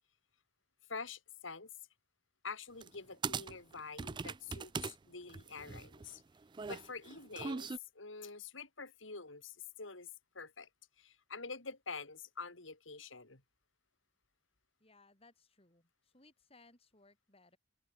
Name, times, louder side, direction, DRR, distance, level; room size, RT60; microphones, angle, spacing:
voice 1, 0.9-1.7 2.4-6.2 6.7-10.1 10.3-10.7 11.0-13.4, left 4 dB, 85° left, 3.6 m, -47 dB
sound 1, 2.8-3.0 3.2-4.9 5.3-7.8, right 5 dB, 25° right, 0.4 m, -40 dB
voice 2, 14.8-17.6, left 3 dB, 30° left, 6.4 m, -64 dB
open air
head